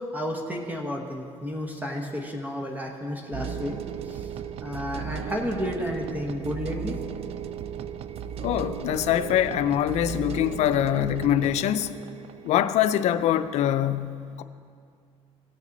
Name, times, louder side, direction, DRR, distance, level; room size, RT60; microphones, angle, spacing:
voice 1, 0.0-3.7 4.1-4.3 4.6-7.0, equal, 15° right, 1.0 m, -32 dB
sound 1, 3.3-13.4, right 7 dB, 60° right, 0.4 m, -36 dB
voice 2, 8.4-11.9 12.4-14.4, left 11 dB, 75° left, 0.4 m, -24 dB
17.0 x 6.2 x 3.9 m
cardioid pair, 110°, 12 cm